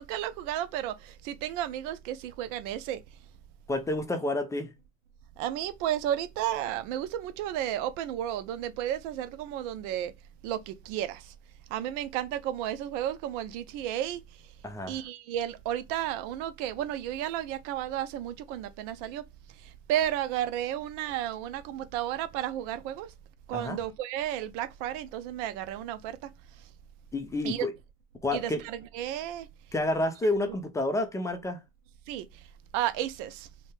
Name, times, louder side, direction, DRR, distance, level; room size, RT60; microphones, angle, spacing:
voice 1, 0.0-3.0 5.4-10.1 10.4-11.3 11.7-14.2 14.9-19.2 19.9-23.1 23.5-26.2 27.4-27.7 28.3-29.5 32.1-32.3 32.7-33.5, right 12 dB, 60° right, 0.6 m, -32 dB
voice 2, 3.7-4.7 14.6-15.0 23.5-23.8 27.1-27.7 28.2-28.6 29.7-31.6, left 2 dB, 10° left, 0.4 m, -29 dB
2.7 x 2.1 x 3.2 m
supercardioid pair, 100°, 42 cm